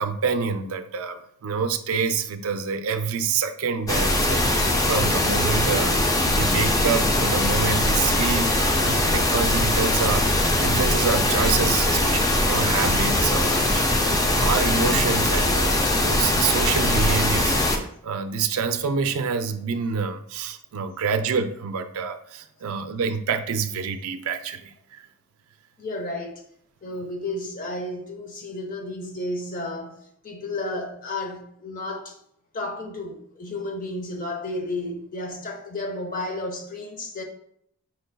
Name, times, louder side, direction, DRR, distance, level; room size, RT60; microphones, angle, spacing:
voice 1, 0.0-25.0, right 6 dB, 75° right, 0.4 m, -27 dB
sound 1, 3.9-17.8, left 1 dB, 15° left, 0.4 m, -21 dB
voice 2, 25.8-26.3 26.8-32.1 32.5-37.2, left 2 dB, 40° left, 0.7 m, -32 dB
5.2 x 3.9 x 2.2 m
head